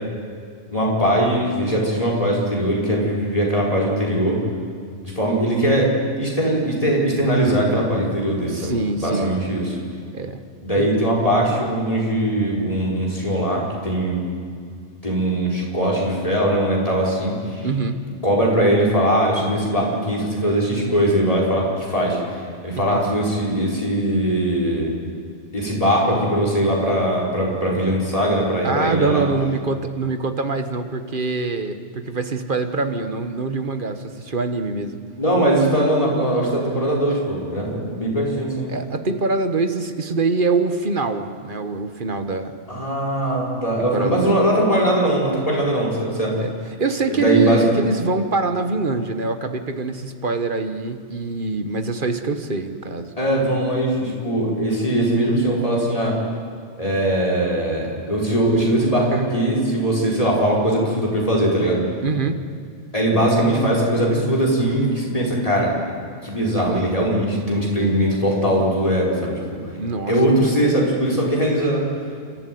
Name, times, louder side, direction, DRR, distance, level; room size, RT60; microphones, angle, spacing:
voice 1, 0.7-4.4 5.0-9.8 10.6-14.2 15.0-17.7 18.2-22.2 22.6-24.9 25.5-29.2 35.2-38.7 42.7-46.4 47.1-47.6 53.2-56.2 56.8-61.8 62.9-65.7 66.2-69.4 70.1-71.9, right 1 dB, 30° left, -3 dB, 5.1 m, -20 dB
voice 2, 8.4-9.3 10.1-10.4 10.7-11.0 17.6-18.0 22.7-23.0 28.6-35.0 38.7-42.5 43.9-44.3 46.4-46.5 46.8-53.1 62.0-62.4 69.8-70.1, right 3 dB, 45° right, 8 dB, 1.4 m, -24 dB
29.0 x 13.5 x 9.3 m, 2.2 s
omnidirectional pair, 1.2 m